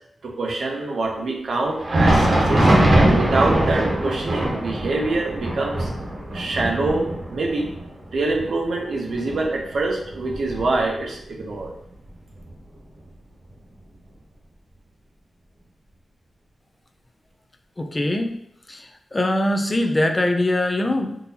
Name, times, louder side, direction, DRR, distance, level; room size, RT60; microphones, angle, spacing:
voice 1, 0.2-5.9 6.3-7.7 8.1-11.7, right 2 dB, 65° right, 0 dB, 0.7 m, -25 dB
Thunder, 1.7-11.1 11.5-11.7 12.3-12.5 13.5-13.6, right 1 dB, 40° right, 0.9 m, -22 dB
voice 2, 17.8-18.4 18.7-21.2, left 1 dB, 20° left, 4 dB, 0.3 m, -22 dB
3.7 x 2.7 x 2.7 m, 0.78 s
wide cardioid pair, 155°, 0 cm